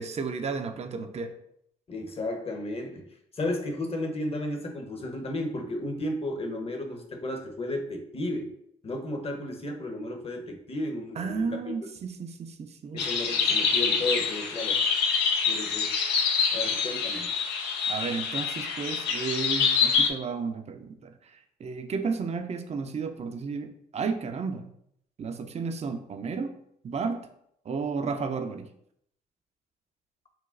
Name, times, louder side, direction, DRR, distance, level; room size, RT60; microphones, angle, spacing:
voice 1, 0.0-1.3 11.2-13.1 17.6-21.1 21.6-24.7 25.2-26.6 26.8-27.3 27.7-28.7, right 5 dB, 35° right, 6 dB, 0.5 m, -33 dB
voice 2, 1.9-3.1 3.3-8.5 8.8-11.6 12.9-14.8 15.5-16.0 16.5-17.3, left 1 dB, 35° left, 4 dB, 0.9 m, -33 dB
sound 1, 13.0-20.1, left 6 dB, 70° left, 0.5 m, -26 dB
5.8 x 2.2 x 2.5 m, 0.72 s
hypercardioid pair, 55°, 18 cm